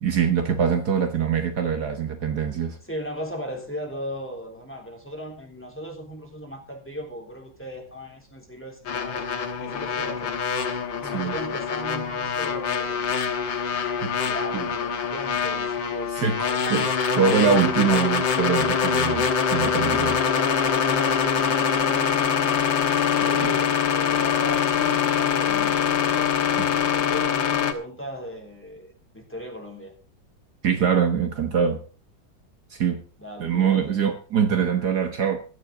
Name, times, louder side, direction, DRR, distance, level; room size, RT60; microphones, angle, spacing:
voice 1, 0.0-2.8 11.0-11.3 14.0-14.1 14.5-14.7 16.1-16.9 17.2-20.2 23.3-23.5 30.6-31.8 32.7-33.0 33.4-35.4, right 7 dB, 60° right, 7 dB, 1.7 m, -23 dB
voice 2, 2.9-9.3 9.6-10.4 11.0-13.1 14.2-16.6 20.2-21.9 23.2-26.3 26.9-30.0 33.2-34.1, equal, 5° left, 2 dB, 3.5 m, -37 dB
sound 1, 8.9-27.7, left 7 dB, 90° left, 2.1 m, -24 dB
16.0 x 12.5 x 3.8 m, 0.36 s
omnidirectional pair, 2.0 m